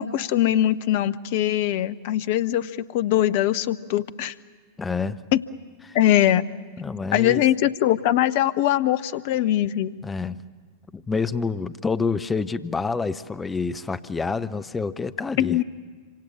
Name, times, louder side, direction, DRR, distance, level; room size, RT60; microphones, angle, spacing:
voice 1, 0.0-4.3 5.3-5.4 5.9-6.4 7.1-9.9 15.4-15.6, left 12 dB, 50° left, 15 dB, 0.7 m, -22 dB
voice 2, 4.8-5.2 5.9-6.0 6.8-7.4 10.0-10.4 10.9-15.6, left 4 dB, 15° left, 13 dB, 0.8 m, -27 dB
26.0 x 25.5 x 7.3 m, 1.5 s
figure-of-eight pair, 90°, 0 cm